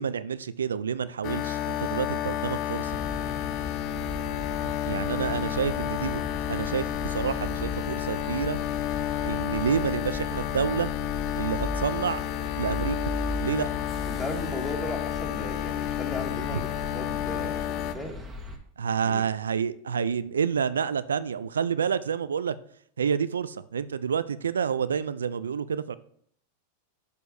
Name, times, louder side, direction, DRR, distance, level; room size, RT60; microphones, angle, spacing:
voice 1, 0.0-3.0 4.6-8.6 9.2-10.9 11.4-12.2 12.6-13.0 13.4-13.7 16.5-16.6 18.8-22.6 23.0-25.9, right 7 dB, 90° right, 15 dB, 0.3 m, -29 dB
Uileann Pipe Drone, 1.2-17.9, left 12 dB, 50° left, 0.5 m, -31 dB
sound 1, 2.8-18.6, left 1 dB, 15° right, 1.3 m, -38 dB
voice 2, 14.1-18.2 19.0-19.2, left 1 dB, 10° left, 1 dB, 1.7 m, -36 dB
6.7 x 6.5 x 2.7 m, 0.65 s
hypercardioid pair, 105°, 0 cm